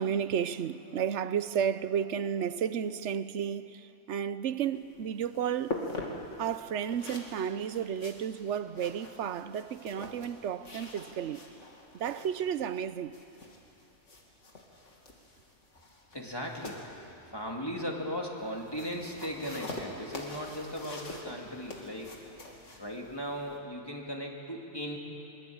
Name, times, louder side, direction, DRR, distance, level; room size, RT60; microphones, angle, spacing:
voice 1, 0.0-5.8 6.4-11.5 11.9-13.1, right 8 dB, 70° right, 1.0 m, -32 dB
sound 1, 4.7-23.6, left 2 dB, 70° left, 2.9 m, -45 dB
voice 2, 16.1-16.9 17.3-22.2 22.8-25.0, equal, 20° left, 2.6 m, -37 dB
24.0 x 21.5 x 8.7 m
omnidirectional pair, 1.3 m